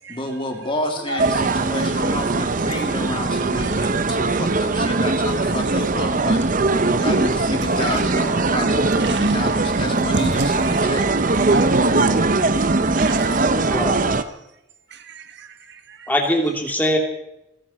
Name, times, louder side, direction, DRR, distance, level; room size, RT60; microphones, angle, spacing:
voice 1, 0.1-6.6 6.9-11.3, left 1 dB, 25° left, 2 dB, 2.8 m, -30 dB
sound 1, 1.2-14.2, right 3 dB, 40° right, 0.8 m, -20 dB
voice 2, 6.5-7.0 8.9-9.4 9.7-10.5 10.8-12.7 13.0-13.5 15.1-15.2, right 2 dB, 55° right, 8 dB, 1.5 m, -28 dB
voice 3, 13.5-14.0 16.1-17.0, equal, 10° left, 2 dB, 2.7 m, -22 dB
29.0 x 11.0 x 4.3 m, 0.85 s
head